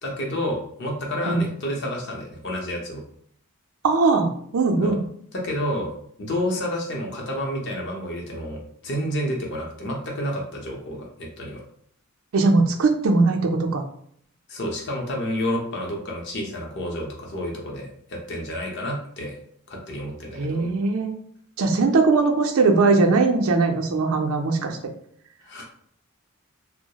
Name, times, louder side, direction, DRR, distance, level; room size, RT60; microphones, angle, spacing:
voice 1, 0.0-3.0 4.8-4.9 5.3-11.6 14.5-19.4 19.7-20.7 25.4-25.6, equal, 55° left, 0 dB, 0.6 m, -30 dB
voice 2, 3.8-5.0 12.3-13.8 20.4-21.1 21.6-24.8, right 3 dB, 85° right, 3 dB, 0.4 m, -20 dB
2.2 x 2.0 x 2.8 m, 0.66 s
head